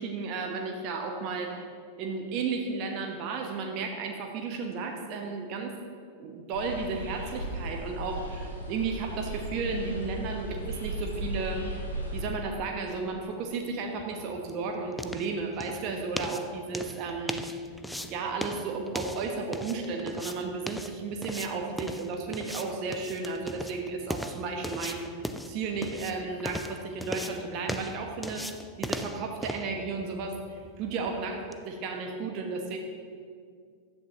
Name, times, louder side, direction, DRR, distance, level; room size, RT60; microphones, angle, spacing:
voice 1, 0.0-1.6 2.0-5.7 6.2-11.7 12.1-17.5 18.1-25.1 25.5-32.8, right 4 dB, 40° right, 3 dB, 1.2 m, -33 dB
sound 1, 6.5-12.2, right 1 dB, 80° left, 2.7 m, -36 dB
sound 2, 13.8-31.6, left 1 dB, ahead, 0.5 m, -39 dB
15.5 x 11.0 x 3.0 m, 2.2 s
figure-of-eight pair, 90°, 0 cm